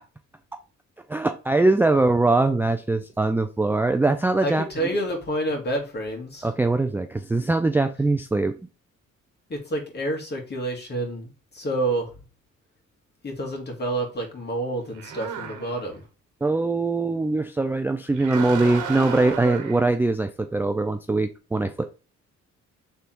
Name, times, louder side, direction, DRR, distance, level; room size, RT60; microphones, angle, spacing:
voice 1, 1.1-4.7 6.4-8.6 16.4-21.9, right 2 dB, 5° right, 7 dB, 0.4 m, -22 dB
voice 2, 4.4-6.5 9.5-12.1 13.2-16.0, right 1 dB, 35° left, 1 dB, 1.9 m, -28 dB
sound 1, 14.9-16.0 18.1-19.8, right 7 dB, 85° right, 1.1 m, -33 dB
3.5 x 3.5 x 4.4 m, 0.32 s
cardioid pair, 90°, 30 cm